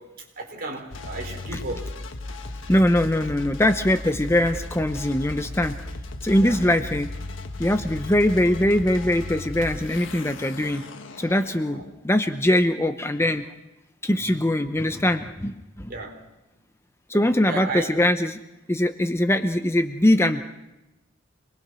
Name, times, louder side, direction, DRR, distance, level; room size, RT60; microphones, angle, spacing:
voice 1, 0.0-2.0 6.4-6.6 14.0-14.1 15.9-16.3 17.1-17.9, right 3 dB, 50° right, 4.2 m, -34 dB
sound 1, 0.9-12.0, left 2 dB, 80° left, 1.5 m, -36 dB
voice 2, 2.7-5.8 6.2-7.1 7.6-10.8 11.2-13.4 14.0-15.9 17.1-18.4 18.7-20.4, left 1 dB, 15° left, 0.8 m, -22 dB
26.0 x 20.5 x 6.2 m
head